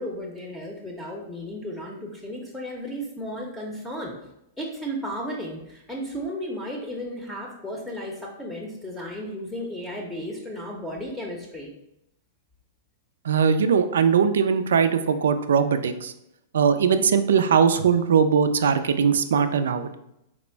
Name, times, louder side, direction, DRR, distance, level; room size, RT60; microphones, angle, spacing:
voice 1, 0.0-4.1 4.6-11.7, equal, 5° left, -2 dB, 0.6 m, -34 dB
voice 2, 13.3-16.1 16.5-19.9, right 6 dB, 85° right, 9 dB, 0.3 m, -20 dB
4.2 x 2.0 x 4.4 m, 0.82 s
hypercardioid pair, 135°, 0 cm